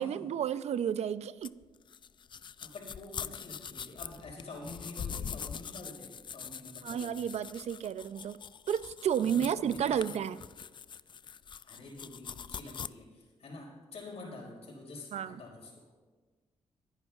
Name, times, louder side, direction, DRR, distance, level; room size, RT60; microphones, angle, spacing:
voice 1, 0.0-1.5 6.8-8.4 8.7-10.4 15.1-15.4, right 9 dB, 70° right, 0.5 m, -32 dB
sound 1, 1.4-12.9, left 7 dB, 40° left, 0.4 m, -43 dB
voice 2, 2.6-7.2 9.2-10.2 11.6-15.8, left 2 dB, 65° left, 5.0 m, -47 dB
26.5 x 10.5 x 2.4 m
cardioid pair, 80°, 12 cm